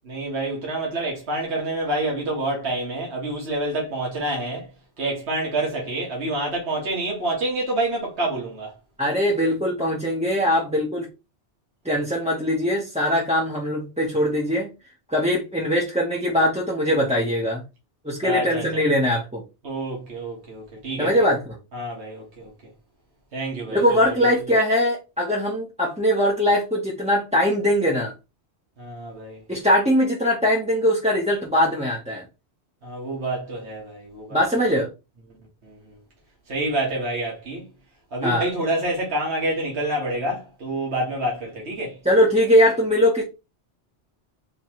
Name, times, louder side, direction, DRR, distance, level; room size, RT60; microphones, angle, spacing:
voice 1, 0.1-4.7 5.0-8.7 18.2-18.8 19.6-21.3 21.7-22.5 23.3-24.3 28.8-29.4 32.8-34.4 35.6-36.0 36.5-37.7 38.1-42.0, right 1 dB, 75° right, 1.7 m, -27 dB
voice 2, 9.0-11.1 11.8-14.7 15.1-17.6 18.0-19.4 21.0-21.4 23.7-28.1 29.5-32.2 34.3-34.9 38.2-38.5 42.0-43.2, equal, 5° right, 0.8 m, -21 dB
3.9 x 3.0 x 3.0 m
omnidirectional pair, 1.1 m